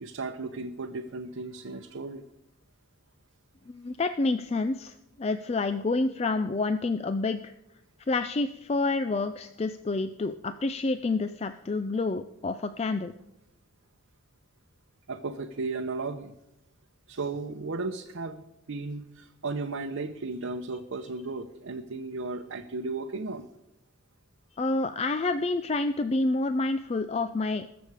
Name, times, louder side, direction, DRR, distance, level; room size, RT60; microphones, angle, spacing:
voice 1, 0.0-2.2 15.1-16.3 17.1-18.4 18.7-23.5, right 3 dB, 85° right, 4 dB, 0.7 m, -35 dB
voice 2, 3.7-7.5 8.1-13.1 24.6-27.7, left 3 dB, 30° left, 10 dB, 0.3 m, -28 dB
20.5 x 7.0 x 4.8 m, 0.87 s
head